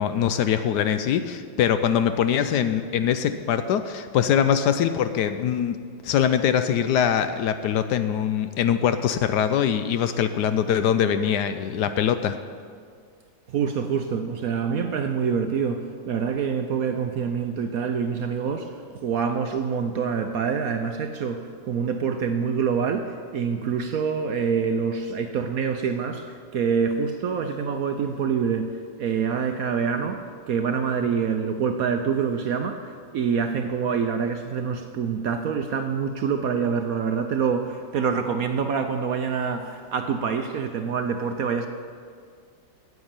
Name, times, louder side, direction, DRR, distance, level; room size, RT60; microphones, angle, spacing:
voice 1, 0.0-12.4, left 9 dB, 75° left, 10 dB, 1.1 m, -23 dB
voice 2, 13.5-41.7, right 6 dB, 65° right, 6 dB, 0.9 m, -26 dB
9.5 x 8.2 x 8.9 m, 2.1 s
omnidirectional pair, 2.0 m